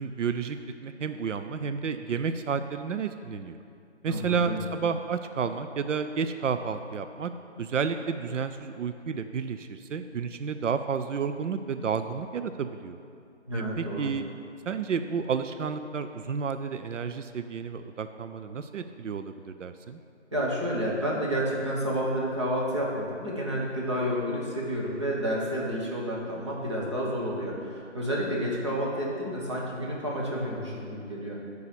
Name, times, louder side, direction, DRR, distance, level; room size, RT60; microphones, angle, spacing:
voice 1, 0.0-3.6 4.0-7.3 7.6-13.0 13.5-14.3 14.7-20.0, right 6 dB, 80° right, 9 dB, 0.5 m, -31 dB
voice 2, 4.0-4.6 13.5-14.1 20.3-31.4, equal, 25° right, -4 dB, 1.0 m, -30 dB
6.9 x 4.8 x 6.9 m, 2.5 s
figure-of-eight pair, 170°, 37 cm